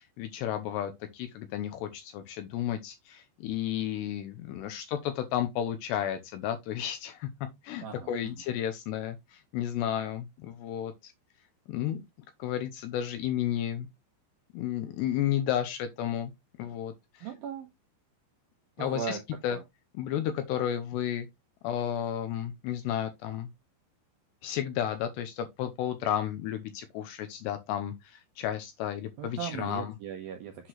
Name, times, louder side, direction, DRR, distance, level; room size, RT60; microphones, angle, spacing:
voice 1, 0.0-7.3 7.6-11.1 11.7-12.0 12.4-13.9 14.5-16.3 16.6-17.3 18.8-19.2 19.4-19.6 19.9-21.3 21.6-23.5 24.4-29.9, left 10 dB, 80° left, 2.6 m, -32 dB
voice 2, 7.8-8.4 17.2-17.7 18.8-19.2 19.5-19.6 29.2-30.7, right 8 dB, 80° right, 2.1 m, -38 dB
8.1 x 5.9 x 3.0 m
omnidirectional pair, 5.5 m